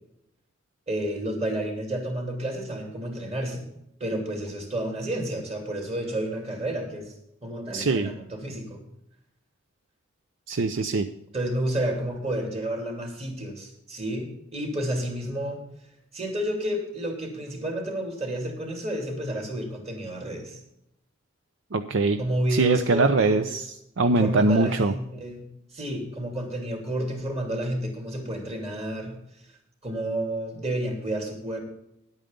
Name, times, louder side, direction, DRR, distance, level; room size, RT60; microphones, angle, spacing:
voice 1, 0.9-3.7 4.0-7.1 7.4-8.8 11.3-15.6 16.1-20.6 22.2-23.5 24.0-25.4 25.7-29.2 29.8-31.6, right 1 dB, 30° right, 2 dB, 2.8 m, -30 dB
voice 2, 7.7-8.1 10.5-11.1 21.7-22.2 22.5-23.6 24.0-24.9, right 3 dB, 65° right, 9 dB, 0.6 m, -22 dB
10.5 x 9.0 x 5.2 m, 0.79 s
head